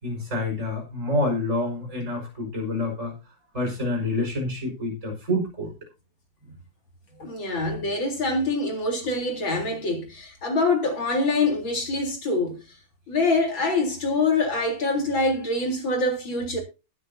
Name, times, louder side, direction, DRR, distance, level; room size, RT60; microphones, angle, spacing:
voice 1, 0.0-3.1 3.5-5.7, left 1 dB, 35° right, 5.8 m, -27 dB
voice 2, 7.2-12.6 13.1-16.6, left 2 dB, 70° left, 4.4 m, -25 dB
20.0 x 9.5 x 2.7 m
omnidirectional pair, 2.2 m